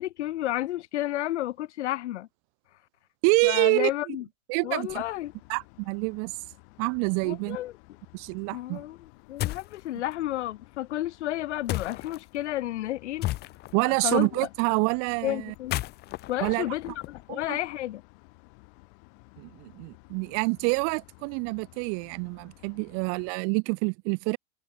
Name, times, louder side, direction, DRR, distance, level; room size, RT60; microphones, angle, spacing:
voice 1, 0.0-2.3 3.4-4.2 4.6-5.3 7.2-7.7 8.5-9.0 9.3-13.3 13.9-14.3 15.2-15.8 16.3-18.0, left 14 dB, 85° left, 0.6 m, -31 dB
voice 2, 3.2-4.2 4.5-5.0 5.5-6.3 6.8-7.6 8.1-8.8 13.7-15.5 16.4-16.7 17.3-17.6 19.4-24.4, right 40 dB or more, 45° right, 0.7 m, -27 dB
sound 1, 4.9-23.3, left 37 dB, 55° left, 6.0 m, -55 dB
sound 2, 9.4-9.8 11.7-12.2 13.2-13.8 15.5-17.5, left 16 dB, 30° left, 0.6 m, -33 dB
hypercardioid pair, 110°, 34 cm